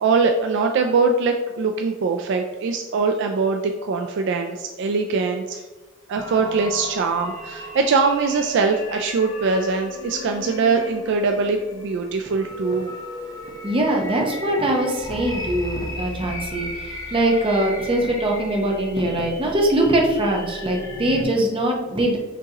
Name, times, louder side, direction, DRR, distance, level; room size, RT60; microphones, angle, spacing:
voice 1, 0.0-5.6 6.1-12.9 17.5-17.6, right 4 dB, 55° right, 4 dB, 0.3 m, -22 dB
sound 1, 6.2-21.2, left 1 dB, 15° left, 0.6 m, -36 dB
voice 2, 13.6-22.2, right 1 dB, 25° right, 0 dB, 0.7 m, -22 dB
6.0 x 2.9 x 2.8 m, 1.2 s
head